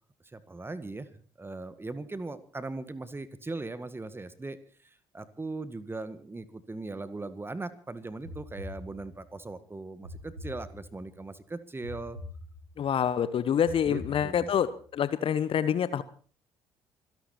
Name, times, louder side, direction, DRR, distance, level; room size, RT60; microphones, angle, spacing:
voice 1, 0.3-1.1 1.4-4.6 4.8-12.2 13.9-14.5, right 3 dB, 20° right, 13 dB, 1.8 m, -39 dB
sound 1, 8.2-9.4 10.0-11.2 11.8-13.0 13.6-14.8, left 2 dB, 85° right, 3.1 m, -44 dB
voice 2, 12.8-16.0, left 8 dB, 45° left, 15 dB, 1.1 m, -27 dB
25.5 x 12.0 x 4.4 m, 0.42 s
figure-of-eight pair, 55°, 13 cm